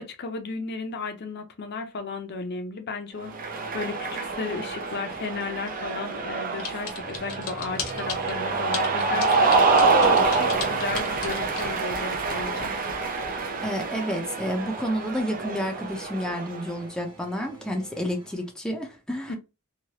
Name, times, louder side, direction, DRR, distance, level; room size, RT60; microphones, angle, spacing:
voice 1, 0.0-12.7 19.3-19.4, left 4 dB, 50° left, 0.5 m, -35 dB
sound 1, 3.1-18.5, right 2 dB, 20° right, 1.2 m, -46 dB
Cheering, 3.3-16.7, right 4 dB, 40° right, 0.6 m, -26 dB
sound 2, 6.6-8.3 8.7-11.7, left 6 dB, 85° left, 0.9 m, -34 dB
voice 2, 13.6-19.4, equal, 5° left, 0.5 m, -30 dB
3.1 x 2.3 x 2.8 m
head